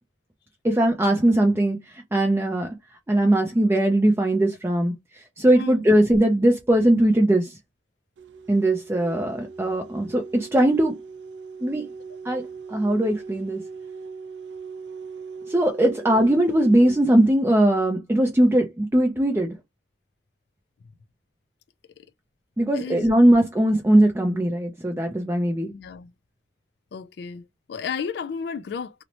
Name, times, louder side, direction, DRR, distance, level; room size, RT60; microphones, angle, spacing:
voice 1, 0.6-1.8 2.1-2.7 3.1-4.9 5.4-7.6 8.5-11.0 11.6-11.9 12.2-13.6 15.5-19.5 22.6-25.7, right 1 dB, 15° right, 0.4 m, -20 dB
sound 1, 8.2-17.3, right 5 dB, 90° right, 0.4 m, -40 dB
voice 2, 25.7-26.1 26.9-27.4 27.7-28.9, left 6 dB, 65° left, 0.3 m, -32 dB
2.7 x 2.1 x 2.8 m
head